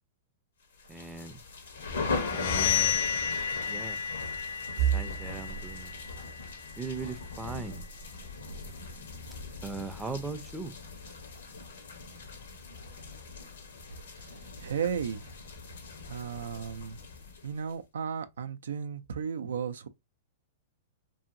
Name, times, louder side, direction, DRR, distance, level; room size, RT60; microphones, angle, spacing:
sound 1, 0.8-17.7, left 4 dB, 90° left, 1.0 m, -40 dB
voice 1, 0.9-1.4 2.3-3.0 3.7-4.0 4.8-5.9 6.8-7.9 9.6-10.7, right 4 dB, 10° right, 0.5 m, -39 dB
sound 2, 2.0-7.7, left 8 dB, 75° left, 0.4 m, -33 dB
sound 3, 4.8-16.6 17.0-17.3 17.7-17.8 18.7-19.2, right 10 dB, 60° right, 0.7 m, -40 dB
voice 2, 14.6-15.2 16.1-17.0 17.4-19.9, right 7 dB, 85° right, 0.3 m, -34 dB
2.8 x 2.7 x 2.5 m
hypercardioid pair, 125°, 0 cm